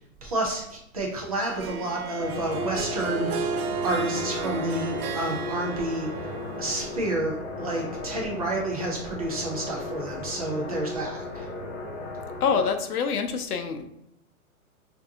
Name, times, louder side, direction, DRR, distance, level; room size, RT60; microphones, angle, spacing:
voice 1, 0.2-3.5 3.8-6.3 6.6-11.5, right 1 dB, 30° right, -2 dB, 0.4 m, -30 dB
Harp, 1.4-7.2, right 5 dB, 80° right, 0.5 m, -33 dB
sound 1, 2.2-12.7, left 2 dB, 50° left, 0.7 m, -36 dB
voice 2, 12.4-13.9, left 6 dB, 90° left, 7 dB, 0.6 m, -26 dB
3.3 x 2.6 x 2.7 m, 0.79 s
hypercardioid pair, 130°, 44 cm